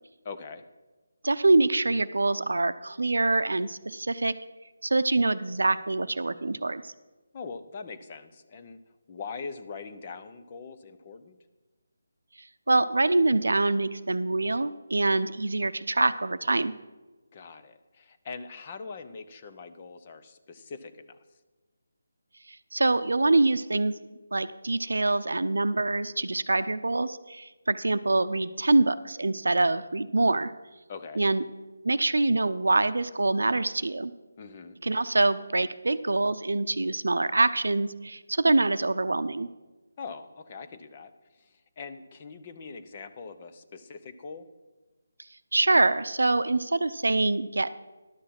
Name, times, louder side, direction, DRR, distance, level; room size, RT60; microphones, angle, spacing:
voice 1, 0.2-0.6 7.3-8.8 9.1-11.4 17.3-21.2 30.9-31.2 34.4-34.8 40.0-44.5, left 5 dB, 30° left, 9 dB, 0.7 m, -42 dB
voice 2, 1.2-4.3 4.8-6.9 12.7-16.7 22.7-23.9 24.3-30.5 31.2-31.4 31.8-34.1 34.8-39.5 45.5-47.7, right 2 dB, 85° right, 13 dB, 0.6 m, -25 dB
11.0 x 6.6 x 5.9 m, 1.2 s
figure-of-eight pair, 165°, 0 cm